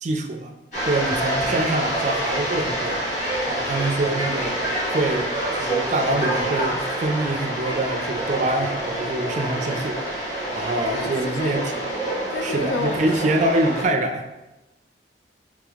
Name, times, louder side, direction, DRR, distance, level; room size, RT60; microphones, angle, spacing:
voice 1, 0.0-0.5 0.8-3.0 3.5-4.6 4.9-5.3 5.5-10.0 10.5-11.7 12.4-14.4, right 2 dB, 40° right, 5 dB, 0.4 m, -25 dB
sound 1, 0.7-13.8, right 1 dB, 40° left, 1.5 m, -27 dB
voice 2, 10.9-11.5 12.3-13.0, left 3 dB, 70° left, 7 dB, 0.4 m, -30 dB
3.5 x 3.3 x 3.5 m, 1.0 s
head